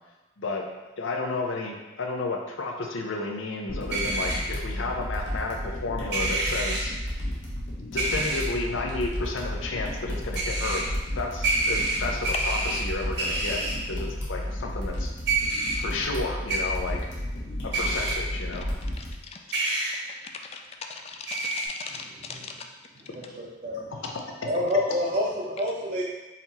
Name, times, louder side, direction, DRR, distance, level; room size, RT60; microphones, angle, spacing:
voice 1, 1.0-6.9 7.8-10.8 11.1-13.6 13.9-15.1 15.8-17.0 17.7-18.7 24.0-24.1 24.4-24.5, left 3 dB, 85° left, 1 dB, 0.6 m, -32 dB
sound 1, 3.7-19.1, left 1 dB, 65° left, 1.2 m, -33 dB
sound 2, 3.9-4.4 6.1-6.8 8.0-8.4 10.3-10.8 11.4-12.8 13.2-13.7 15.3-15.8 16.5-16.6 17.7-18.1 19.5-19.9 21.3-21.7, right 3 dB, 60° right, 1.0 m, -27 dB
voice 2, 18.9-19.4 19.9-22.7, left 5 dB, 30° left, 3 dB, 0.3 m, -40 dB
voice 3, 23.1-24.0 24.4-26.0, left 1 dB, 40° right, -5 dB, 0.5 m, -28 dB
4.2 x 2.9 x 4.1 m, 1.1 s
head